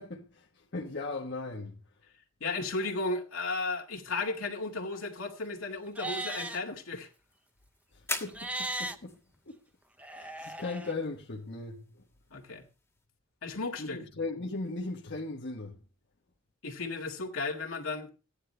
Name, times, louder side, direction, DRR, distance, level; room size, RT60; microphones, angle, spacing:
voice 1, 0.0-1.8 7.9-9.2 9.5-9.6 10.1-12.0 13.8-15.8, left 3 dB, 55° left, 1.3 m, -38 dB
voice 2, 2.4-7.1 12.3-12.7 13.4-14.0 16.6-18.1, left 3 dB, 80° left, 2.2 m, -34 dB
sound 1, 4.6-13.1, left 3 dB, 10° left, 1.5 m, -46 dB
Livestock farm animals working animals, 5.9-6.6 8.3-9.0 10.0-10.9, right 1 dB, 5° right, 0.7 m, -37 dB
15.0 x 10.0 x 3.3 m
head